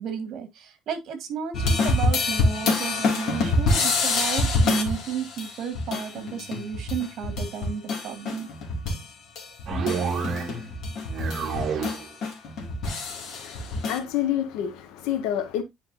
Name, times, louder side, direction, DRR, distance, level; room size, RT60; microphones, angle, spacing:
voice 1, 0.0-8.5, right 7 dB, 55° right, 1.8 m, -33 dB
sound 1, 1.5-9.1 9.4-14.0, left 3 dB, 55° left, 2.3 m, -26 dB
sound 2, 9.7-10.7 11.0-12.1, right 5 dB, 40° right, 1.8 m, -29 dB
voice 2, 13.0-15.6, left 10 dB, 90° left, 1.3 m, -29 dB
9.7 x 4.5 x 2.6 m
cardioid pair, 145°, 0 cm